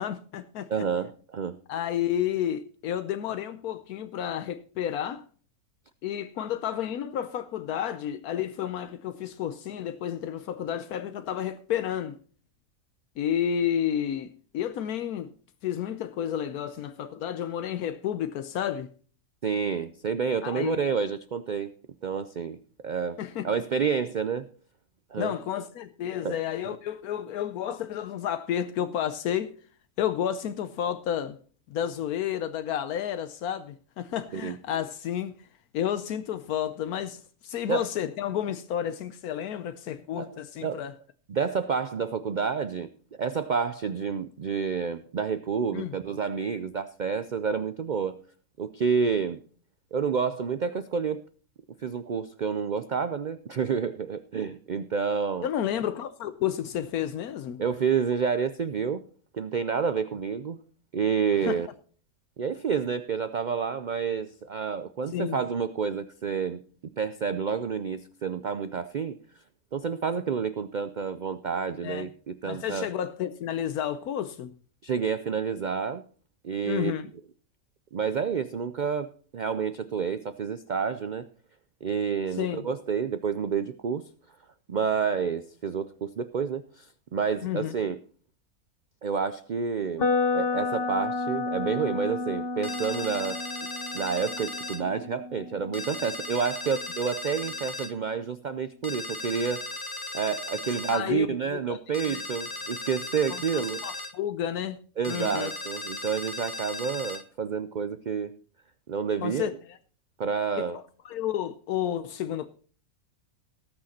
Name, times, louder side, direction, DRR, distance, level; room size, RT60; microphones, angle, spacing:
voice 1, 0.0-0.9 1.7-5.2 6.0-12.2 13.2-15.3 15.6-18.9 20.4-20.8 23.2-23.5 25.2-29.5 30.0-31.4 31.7-35.4 35.7-41.0 45.7-45.9 55.4-57.6 61.4-61.5 65.1-65.4 71.8-72.1 72.5-74.5 76.7-77.1 82.4-82.6 87.4-87.8 100.9-101.8 102.1-102.2 103.5-104.8 105.1-105.5 109.2-109.8 110.6-112.5, left 10 dB, 80° left, 1.2 m, -31 dB
voice 2, 0.7-1.6 19.4-21.7 22.0-22.6 22.8-23.2 23.4-24.5 25.1-25.3 26.2-26.4 26.7-26.8 34.3-34.6 37.7-37.9 40.2-40.3 40.6-40.8 41.3-42.9 43.2-48.1 48.6-49.4 49.9-51.2 51.8-55.5 57.6-59.0 59.3-60.6 60.9-61.7 62.4-66.6 67.0-69.2 69.7-72.9 74.8-76.0 76.4-76.9 77.9-81.3 81.8-84.0 84.7-88.0 89.0-90.1 90.3-93.4 93.9-99.7 100.1-103.8 105.0-108.3 108.9-109.5 110.2-110.8, right 6 dB, 85° right, 0.4 m, -29 dB
sound 1, 90.0-97.9, left 3 dB, 45° left, 1.0 m, -32 dB
sound 2, 92.6-94.8 95.7-97.9 98.8-101.0 101.9-104.1 105.0-107.2, left 2 dB, 25° left, 0.6 m, -37 dB
18.5 x 6.4 x 4.2 m
omnidirectional pair, 1.6 m